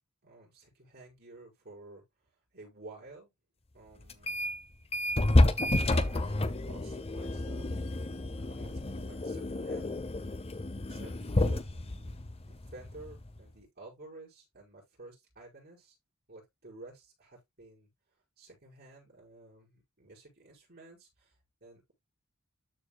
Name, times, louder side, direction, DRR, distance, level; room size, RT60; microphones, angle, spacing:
voice 1, 0.2-2.0 2.5-3.3 3.7-4.4 5.6-7.7 8.0-9.9 10.3-10.4 10.9-11.1 11.4-16.0 16.3-17.9 18.4-21.9, right 2 dB, 45° right, 5.9 m, -52 dB
sound 1, 4.1-4.6 4.9-13.4, left 1 dB, 30° left, 0.7 m, -30 dB
13.5 x 4.5 x 2.3 m
head